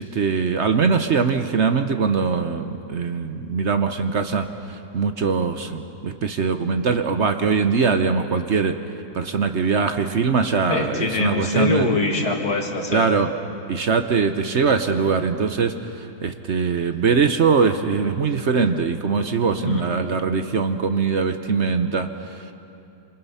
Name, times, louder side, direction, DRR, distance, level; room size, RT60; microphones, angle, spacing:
voice 1, 0.0-8.8 9.1-11.9 12.9-13.3 13.7-22.5, right 5 dB, 50° right, 8 dB, 1.0 m, -22 dB
voice 2, 10.7-13.0 19.7-19.8, left 3 dB, 85° left, 1 dB, 2.9 m, -23 dB
27.0 x 26.0 x 5.6 m, 2.7 s
omnidirectional pair, 1.7 m